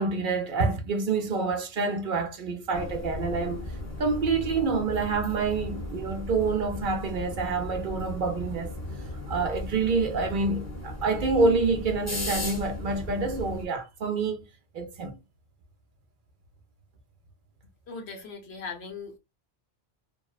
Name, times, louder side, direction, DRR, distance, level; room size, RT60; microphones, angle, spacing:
voice 1, 0.0-3.7 4.0-8.7 9.3-14.4 14.7-15.2, right 4 dB, 60° right, 0.7 m, -27 dB
sound 1, 2.7-13.7, left 1 dB, 20° left, 0.6 m, -36 dB
voice 2, 17.9-19.2, left 4 dB, 85° left, 1.1 m, -39 dB
2.8 x 2.1 x 2.3 m
omnidirectional pair, 1.1 m